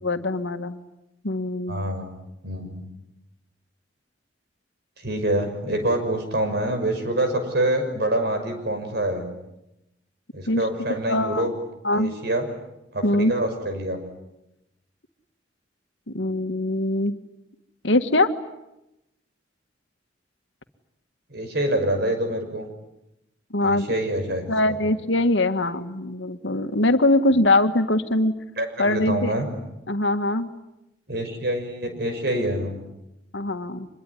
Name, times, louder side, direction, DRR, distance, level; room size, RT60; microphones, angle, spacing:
voice 1, 0.0-0.8 1.2-1.7 10.5-10.7 11.1-11.5 11.8-12.2 13.0-13.3 16.1-17.2 17.8-18.3 23.5-23.9 24.5-28.3 28.8-29.3 29.9-30.5 33.3-33.9, left 2 dB, 80° left, 8 dB, 1.8 m, -22 dB
voice 2, 1.7-2.1 2.4-2.9 5.0-9.3 10.3-11.5 11.9-12.4 12.9-14.0 21.3-22.7 23.6-24.5 28.6-29.4 31.1-32.7, right 1 dB, 60° right, 6 dB, 6.1 m, -26 dB
25.0 x 22.0 x 10.0 m, 0.90 s
head